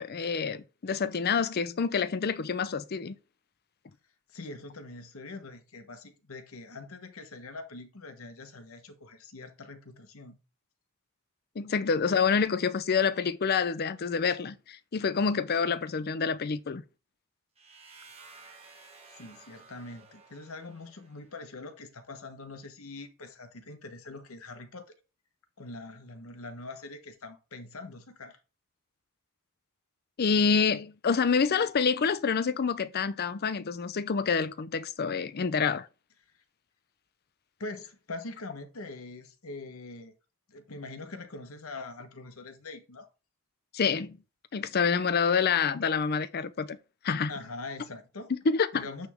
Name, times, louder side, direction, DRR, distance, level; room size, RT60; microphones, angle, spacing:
voice 1, 0.0-3.2 11.6-16.8 30.2-35.9 43.7-44.2 44.5-46.8 47.0-47.3 48.3-49.1, left 5 dB, 45° left, 0.5 m, -27 dB
voice 2, 4.3-10.4 19.1-24.9 25.6-28.4 37.6-40.1 40.5-43.1 47.3-48.3 48.7-49.1, left 2 dB, 75° left, 1.2 m, -43 dB
sound 1, 17.6-21.4, right 4 dB, 30° right, 1.7 m, -54 dB
9.0 x 3.4 x 3.5 m
head